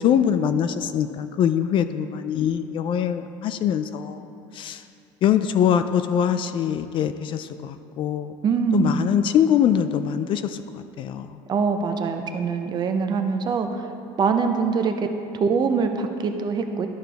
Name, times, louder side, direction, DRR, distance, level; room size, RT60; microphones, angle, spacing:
voice 1, 0.0-4.2 4.5-4.8 5.2-8.3 8.7-11.4, left 9 dB, 45° left, 10 dB, 0.3 m, -23 dB
voice 2, 8.4-9.1 11.5-13.9 14.2-15.1 15.3-16.9, right 5 dB, 35° right, 6 dB, 0.6 m, -23 dB
12.0 x 5.8 x 3.4 m, 2.7 s
supercardioid pair, 120°, 12 cm